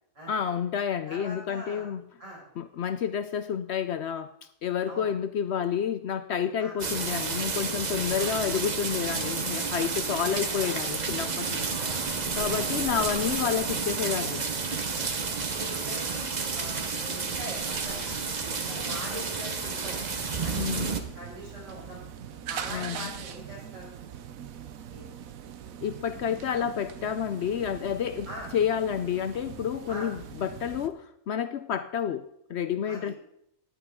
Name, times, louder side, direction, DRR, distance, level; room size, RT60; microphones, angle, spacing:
voice 1, 0.3-2.0 2.6-4.3 4.6-11.8 12.4-14.4 20.5-20.9 22.7-23.1 25.8-28.3 28.5-33.1, left 8 dB, 65° left, 12 dB, 0.7 m, -30 dB
voice 2, 1.1-1.9 2.2-2.4 4.9-5.1 6.6-6.7 8.2-8.5 10.1-10.8 11.8-12.0 15.5-18.0 18.4-20.0 20.4-20.9 21.1-22.0 22.5-24.2 24.9-25.1 26.3-26.4 28.3-28.5 29.9-30.1 32.8-33.0, equal, 65° right, -4 dB, 5.9 m, -42 dB
sound 1, 6.8-21.0, right 4 dB, 35° right, 0.9 m, -31 dB
sound 2, 11.1-30.9, right 9 dB, 90° right, 1.2 m, -42 dB
15.0 x 10.0 x 3.6 m, 0.75 s
omnidirectional pair, 1.4 m